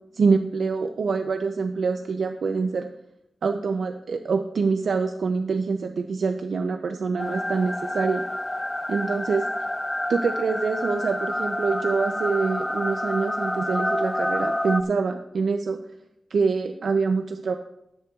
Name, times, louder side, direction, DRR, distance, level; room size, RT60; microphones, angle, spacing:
voice 1, 0.1-2.9 3.4-8.2 8.9-9.5 10.1-15.8 16.3-17.5, right 4 dB, 80° right, 6 dB, 0.5 m, -25 dB
sound 1, 7.2-14.8, left 1 dB, 10° left, 0.6 m, -28 dB
13.5 x 10.5 x 2.4 m, 0.84 s
wide cardioid pair, 110°, 0 cm